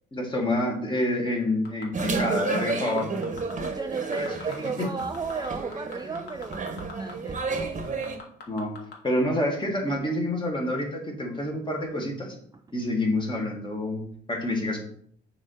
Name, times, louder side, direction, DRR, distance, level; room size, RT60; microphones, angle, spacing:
voice 1, 0.1-3.2 4.1-4.3 8.5-8.7 9.0-12.4 12.7-14.0 14.3-14.8, left 1 dB, 25° left, 0 dB, 2.0 m, -27 dB
sound 1, 1.6-2.4 2.8-3.7 4.0-4.5 4.8-7.1 7.4-7.5 7.8-8.9 9.4-9.5, left 4 dB, 55° left, 1.6 m, -42 dB
sound 2, 1.9-8.2, right 4 dB, 40° right, 1.2 m, -31 dB
voice 2, 3.5-7.4, right 5 dB, 20° right, 7 dB, 0.4 m, -34 dB
6.7 x 3.0 x 5.6 m, 0.62 s
cardioid pair, 90°, 20 cm